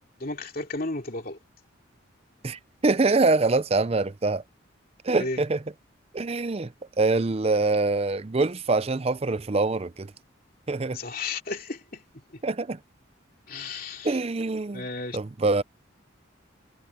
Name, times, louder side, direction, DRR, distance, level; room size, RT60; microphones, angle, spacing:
voice 1, 0.2-1.4 5.2-5.4 10.9-12.0 13.5-14.2 14.7-15.2, left 3 dB, 45° left, 2.9 m, -33 dB
voice 2, 2.4-4.4 5.0-5.6 6.1-6.7 7.0-10.1 10.7-11.0 12.4-12.8 14.0-14.9 15.1-15.6, right 3 dB, 30° right, 0.5 m, -24 dB
head